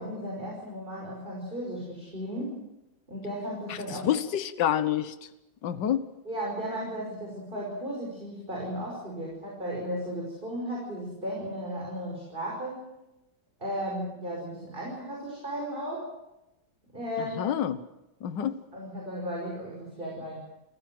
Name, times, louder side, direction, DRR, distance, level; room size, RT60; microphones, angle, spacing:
voice 1, 0.0-2.6 3.1-4.1 6.2-12.9 13.6-16.1 16.9-17.6 18.7-20.4, equal, 25° right, -2 dB, 5.9 m, -35 dB
voice 2, 4.0-5.1 5.6-6.1 17.4-17.8 18.2-18.6, left 10 dB, 75° left, 12 dB, 1.7 m, -27 dB
28.5 x 15.5 x 7.8 m, 0.93 s
omnidirectional pair, 2.0 m